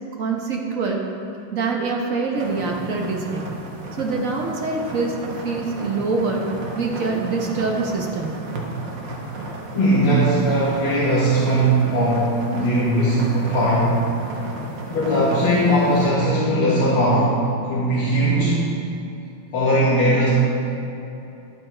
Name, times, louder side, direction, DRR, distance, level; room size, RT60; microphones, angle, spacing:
voice 1, 0.1-1.0 1.5-3.5 4.0-5.2 5.4-6.5 6.7-8.3, right 4 dB, 50° right, 0 dB, 1.2 m, -24 dB
sound 1, 2.4-16.1, right 2 dB, 65° right, 1.7 m, -34 dB
voice 2, 9.7-14.1 14.9-17.4 17.6-18.7 19.5-20.3, right 1 dB, 80° left, -8 dB, 2.5 m, -19 dB
11.5 x 7.8 x 4.4 m, 2.7 s
omnidirectional pair, 2.3 m